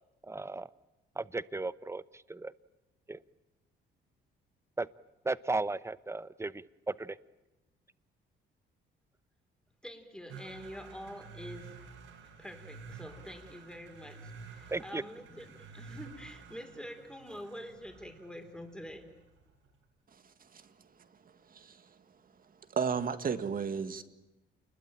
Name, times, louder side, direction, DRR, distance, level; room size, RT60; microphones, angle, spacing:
voice 1, 0.3-0.7 1.2-2.0 2.3-2.5 3.1-3.2 4.8-4.9 5.2-7.2 14.7-15.0, right 3 dB, 15° right, 17 dB, 0.9 m, -35 dB
voice 2, 9.8-11.7 12.4-19.1, equal, 5° left, 5 dB, 4.2 m, -46 dB
sound 1, 10.3-19.7, right 5 dB, 85° right, 7.0 m, -51 dB
voice 3, 21.5-21.9 22.7-24.0, right 6 dB, 45° right, 10 dB, 2.0 m, -33 dB
28.5 x 21.5 x 9.1 m, 1.0 s
cardioid pair, 90°, 20 cm